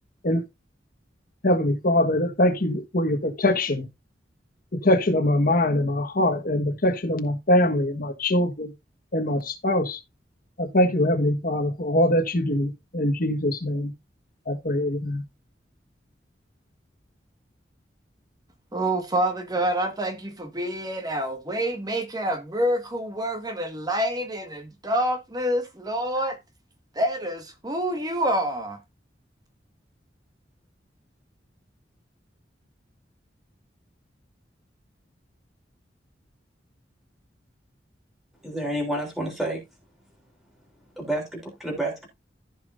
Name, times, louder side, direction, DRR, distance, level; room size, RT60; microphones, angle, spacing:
voice 1, 1.4-3.8 4.7-8.7 9.1-10.0 10.6-13.9 14.5-15.2, left 1 dB, 55° left, 1.5 m, -23 dB
voice 2, 18.7-26.4 27.0-28.8, right 1 dB, 20° right, 1.6 m, -27 dB
voice 3, 38.4-39.6 41.0-42.1, right 1 dB, ahead, 3.6 m, -29 dB
15.0 x 5.5 x 2.6 m
head